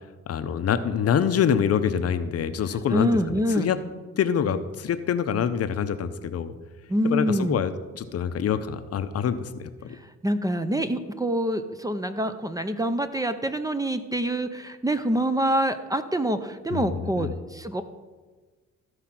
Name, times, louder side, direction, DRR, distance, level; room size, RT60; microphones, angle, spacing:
voice 1, 0.3-3.8 4.2-6.5 7.0-10.0 16.7-17.3, left 8 dB, 55° left, 11 dB, 0.7 m, -26 dB
voice 2, 2.9-3.7 6.9-7.6 10.2-17.8, right 1 dB, 10° right, 10 dB, 0.6 m, -26 dB
14.0 x 4.9 x 5.9 m, 1.4 s
cardioid pair, 90°, 30 cm